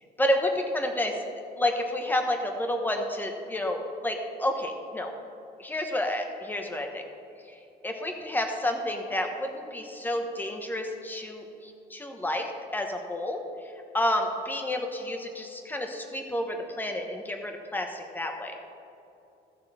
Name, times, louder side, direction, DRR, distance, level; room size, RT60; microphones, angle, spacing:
voice 1, 0.2-1.2 1.6-5.1 5.6-7.0 7.5-18.6, left 1 dB, 10° left, 3 dB, 1.2 m, -30 dB
14.5 x 6.7 x 4.3 m, 2.8 s
cardioid pair, 110°, 17 cm